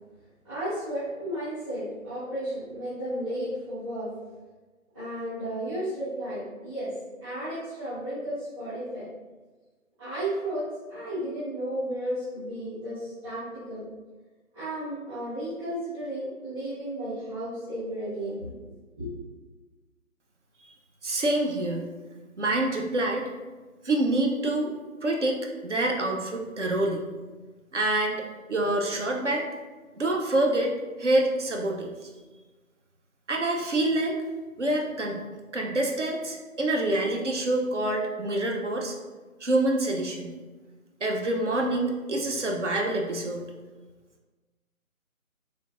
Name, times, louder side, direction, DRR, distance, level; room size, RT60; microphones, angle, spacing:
voice 1, 0.4-4.1 4.9-6.9 7.2-9.1 10.0-13.8 14.5-18.5 19.0-19.2, right 1 dB, 20° right, -18 dB, 1.3 m, -33 dB
voice 2, 21.0-21.9 22.4-23.3 23.8-24.7 25.0-25.4 25.6-27.1 27.7-29.5 30.0-30.7 31.0-32.1 33.3-34.2 34.6-35.2 35.5-39.0 39.4-40.4 41.0-43.5, right 1 dB, 55° right, 1 dB, 0.5 m, -26 dB
3.1 x 3.1 x 2.4 m, 1.3 s
figure-of-eight pair, 155°, 42 cm